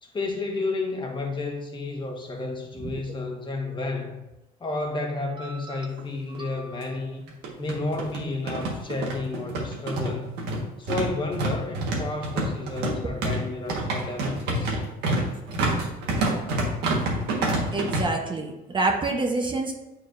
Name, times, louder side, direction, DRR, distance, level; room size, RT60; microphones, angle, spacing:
voice 1, 0.0-4.2 4.6-7.2 7.6-10.4 10.8-14.8, left 3 dB, 30° left, 1 dB, 1.3 m, -31 dB
sound 1, 6.0-6.1 6.3-6.4 7.3-18.0, right 2 dB, 85° right, 1.5 m, -27 dB
voice 2, 6.3-6.8 17.7-19.7, right 3 dB, 30° right, 2 dB, 0.9 m, -27 dB
9.0 x 4.6 x 2.6 m, 0.97 s
cardioid pair, 110°, 17 cm